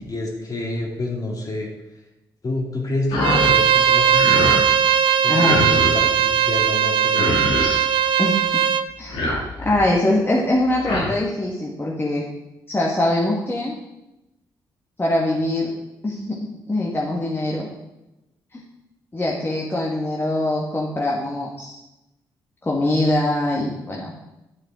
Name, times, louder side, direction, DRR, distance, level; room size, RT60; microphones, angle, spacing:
voice 1, 0.1-1.7 2.4-4.6 5.2-7.7, left 2 dB, 40° left, -1 dB, 2.5 m, -28 dB
sound 1, 3.1-3.5 3.9-4.6 5.3-6.1 6.8-6.9 7.1-7.8 8.9-9.8 10.6-11.1, left 1 dB, 90° left, 2.8 m, -25 dB
Bowed string instrument, 3.2-8.9, right 8 dB, 70° right, 0.6 m, -18 dB
voice 2, 5.3-5.7 8.2-8.4 9.0-9.2 9.6-12.3 12.7-13.8 15.0-15.7 16.0-17.7 18.5-18.6 19.1-21.8 22.6-24.1, left 1 dB, 25° left, -3 dB, 1.6 m, -23 dB
10.0 x 6.4 x 3.7 m, 0.93 s
supercardioid pair, 65°, 9 cm